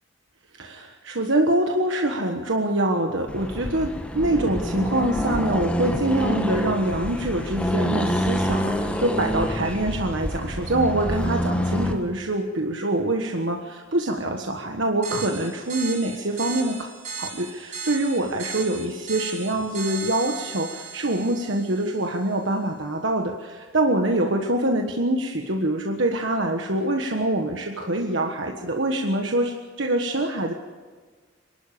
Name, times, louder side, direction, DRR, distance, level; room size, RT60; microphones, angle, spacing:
voice 1, 0.5-16.9 17.2-30.5, right 1 dB, 70° right, 3 dB, 1.4 m, -25 dB
Accelerating revving vroom, 3.3-12.0, equal, 5° left, 1.4 m, -27 dB
sound 1, 15.0-22.2, right 5 dB, 40° right, 5.1 m, -37 dB
26.5 x 12.0 x 8.5 m, 1.5 s
head